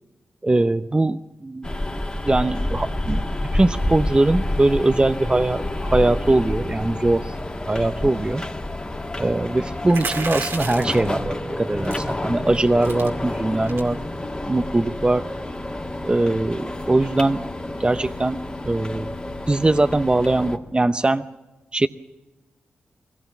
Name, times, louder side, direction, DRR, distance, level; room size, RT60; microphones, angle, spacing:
voice 1, 0.4-1.7 2.2-7.3 7.7-8.4 9.1-14.0 14.4-15.3 16.0-17.4 17.8-18.4 18.7-19.1 19.5-21.2 21.7-21.9, right 2 dB, 25° right, 9 dB, 0.7 m, -21 dB
sound 1, 1.6-20.6, left 1 dB, 25° left, 1.9 m, -29 dB
sound 2, 9.9-11.1 11.9-12.1 12.5-12.6 12.8-13.1 13.6-13.9, right 4 dB, 85° right, 2.4 m, -31 dB
21.5 x 17.0 x 7.3 m, 1.1 s
cardioid pair, 50°, 4 cm